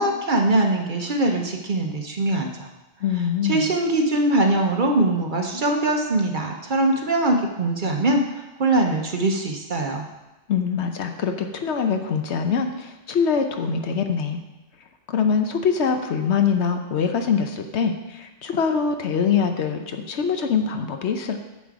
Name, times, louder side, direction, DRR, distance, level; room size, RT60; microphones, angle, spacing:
voice 1, 0.0-2.7 3.4-10.1, right 2 dB, 45° right, 3 dB, 0.8 m, -22 dB
voice 2, 3.0-3.7 10.5-14.4 15.1-21.4, left 6 dB, 65° left, 6 dB, 1.0 m, -23 dB
7.5 x 7.3 x 4.7 m, 1.0 s
omnidirectional pair, 1.3 m